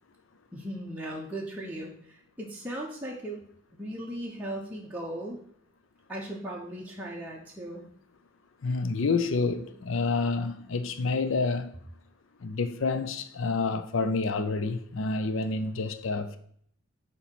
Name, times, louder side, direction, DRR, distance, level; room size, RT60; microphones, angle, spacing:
voice 1, 0.5-3.4 3.7-5.4 6.1-7.9, right 1 dB, 10° right, 0.8 m, -37 dB
voice 2, 8.6-11.7 12.4-16.4, left 3 dB, 65° left, 0.5 m, -28 dB
7.0 x 2.9 x 5.9 m
head